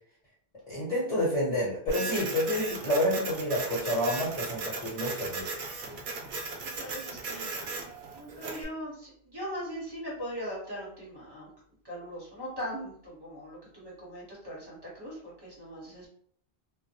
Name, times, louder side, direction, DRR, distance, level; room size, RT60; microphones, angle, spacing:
voice 1, 0.7-5.7, left 1 dB, 35° left, -8 dB, 1.0 m, -29 dB
Printer, 1.9-8.6, right 3 dB, 80° right, 0.8 m, -37 dB
voice 2, 6.7-11.5 11.8-16.1, equal, 25° right, -7 dB, 1.1 m, -40 dB
2.3 x 2.0 x 2.8 m, 0.62 s
omnidirectional pair, 1.1 m